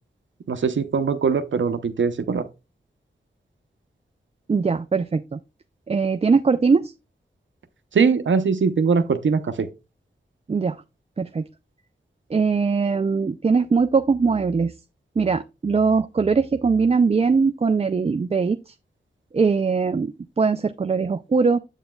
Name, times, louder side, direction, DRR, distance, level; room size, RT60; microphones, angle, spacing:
voice 1, 0.5-2.4 7.9-9.7, right 5 dB, 80° right, 0.7 m, -21 dB
voice 2, 4.5-5.4 5.9-6.9 10.5-10.8 11.2-11.5 12.3-14.7 15.2-18.7 19.3-21.6, right 5 dB, 30° right, 0.4 m, -21 dB
8.0 x 7.4 x 2.3 m
wide cardioid pair, 65°, 19 cm